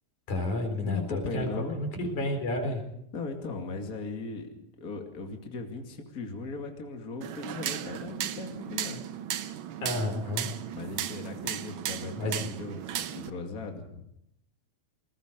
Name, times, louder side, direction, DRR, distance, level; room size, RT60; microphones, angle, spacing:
voice 1, 0.3-2.8 9.8-10.5 12.2-12.5, left 1 dB, 90° left, 5 dB, 5.6 m, -31 dB
voice 2, 0.9-1.8 3.1-9.0 10.7-12.8 13.1-14.0, left 3 dB, 30° left, 3 dB, 2.7 m, -38 dB
sound 1, 7.2-13.3, right 10 dB, 65° right, 1.2 m, -35 dB
28.5 x 20.5 x 5.2 m, 0.78 s
omnidirectional pair, 3.4 m